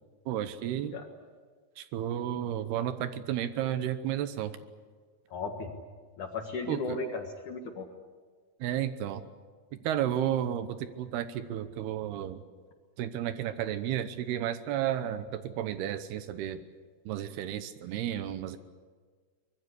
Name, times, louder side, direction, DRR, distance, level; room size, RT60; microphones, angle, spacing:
voice 1, 0.3-1.0 1.8-4.5 6.7-7.0 8.6-9.3 9.7-12.4 13.0-16.6 17.1-18.6, right 11 dB, 75° right, 11 dB, 2.8 m, -32 dB
voice 2, 5.3-5.7 6.2-7.9, left 3 dB, 55° left, 4 dB, 2.7 m, -35 dB
24.0 x 21.0 x 8.3 m, 1.6 s
omnidirectional pair, 5.0 m